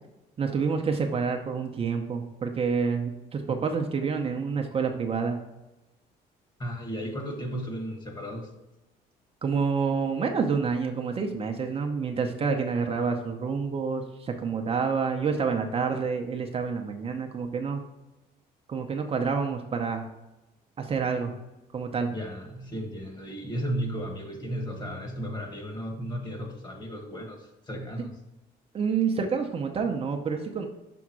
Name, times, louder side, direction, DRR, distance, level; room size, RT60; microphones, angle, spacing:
voice 1, 0.4-5.4 9.4-17.8 18.7-20.1 20.8-21.3 21.7-22.1 28.7-30.7, right 5 dB, 35° right, 3 dB, 0.7 m, -28 dB
voice 2, 6.6-8.5 22.1-28.2, equal, 25° left, 3 dB, 1.5 m, -34 dB
6.1 x 3.5 x 6.0 m, 1.0 s
cardioid pair, 110°, 17 cm